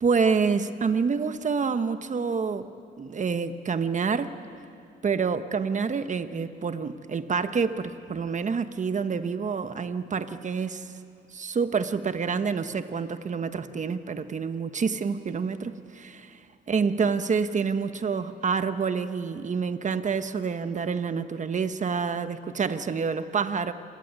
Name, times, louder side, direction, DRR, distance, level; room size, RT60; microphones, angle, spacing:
voice 1, 0.0-2.7 3.0-4.3 5.0-10.9 11.3-16.1 16.7-23.7, right 5 dB, 40° right, 10 dB, 1.3 m, -27 dB
26.5 x 18.0 x 9.6 m, 2.5 s
cardioid pair, 90°, 20 cm